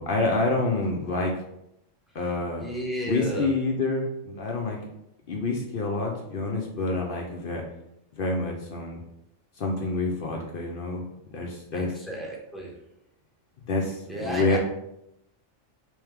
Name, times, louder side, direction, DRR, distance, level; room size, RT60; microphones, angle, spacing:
voice 1, 0.0-1.3 2.1-2.7 3.1-4.8 5.3-7.6 8.2-9.0 9.6-11.0 11.3-11.9 13.7-14.6, left 3 dB, 60° left, 0 dB, 0.6 m, -27 dB
voice 2, 2.6-3.5 11.7-12.8 14.1-14.6, equal, ahead, -4 dB, 0.6 m, -33 dB
3.3 x 3.1 x 3.3 m, 0.81 s
omnidirectional pair, 1.4 m